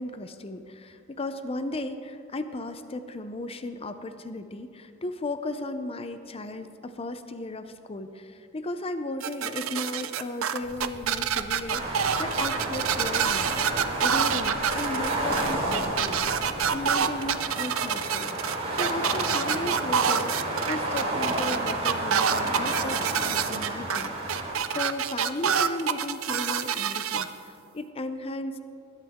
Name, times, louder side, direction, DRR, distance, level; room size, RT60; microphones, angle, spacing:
voice 1, 0.0-13.5 14.0-16.2 16.7-18.3 18.7-28.6, left 2 dB, 30° left, 10 dB, 0.5 m, -35 dB
sound 1, 9.2-27.2, right 8 dB, 80° right, 0.6 m, -27 dB
sound 2, 10.6-16.9, equal, 50° right, 1.7 m, -45 dB
sound 3, 11.7-24.5, right 1 dB, 30° right, 3.5 m, -31 dB
20.5 x 11.5 x 3.6 m, 2.6 s
head